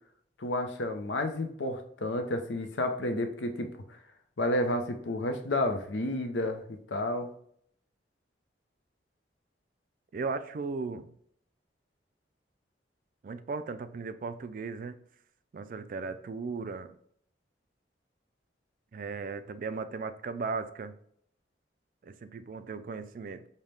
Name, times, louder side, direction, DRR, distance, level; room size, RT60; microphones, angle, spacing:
voice 1, 0.4-4.0 4.4-7.3, left 1 dB, 90° left, 6 dB, 0.6 m, -31 dB
voice 2, 10.1-11.1 13.2-15.0 15.5-17.0 18.9-20.9 22.0-23.5, right 4 dB, 50° right, 11 dB, 0.3 m, -36 dB
5.4 x 2.2 x 3.2 m, 0.65 s
head